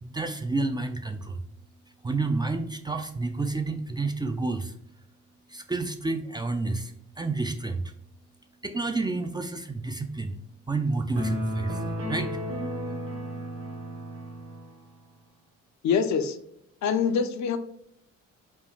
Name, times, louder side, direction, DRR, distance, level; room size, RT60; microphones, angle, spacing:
voice 1, 0.0-1.4 2.0-4.8 5.5-7.9 8.6-10.4 10.7-12.4, right 3 dB, 15° right, 7 dB, 0.3 m, -30 dB
sound 1, 11.2-14.7, equal, 50° right, 1.1 m, -32 dB
voice 2, 15.8-16.4 16.8-17.6, left 6 dB, 70° left, 10 dB, 0.5 m, -24 dB
5.2 x 2.3 x 3.1 m, 0.73 s
cardioid pair, 90°, 30 cm